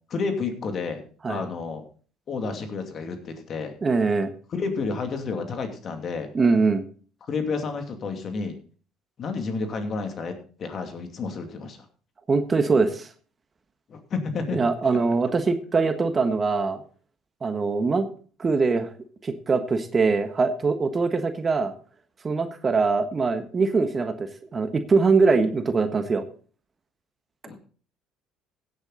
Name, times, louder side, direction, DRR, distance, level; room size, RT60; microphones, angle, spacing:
voice 1, 0.1-1.8 2.3-3.8 4.5-6.3 7.3-8.6 9.2-11.8 13.9-14.6 14.9-15.0 27.4-27.6, left 4 dB, 50° left, 6 dB, 2.5 m, -30 dB
voice 2, 3.8-4.3 6.3-6.8 12.3-13.1 14.5-16.8 17.4-18.1 18.4-18.9 19.2-21.7 22.2-26.2, right 4 dB, 30° right, 9 dB, 1.4 m, -22 dB
16.0 x 8.1 x 4.0 m, 0.40 s
hypercardioid pair, 65°, 0 cm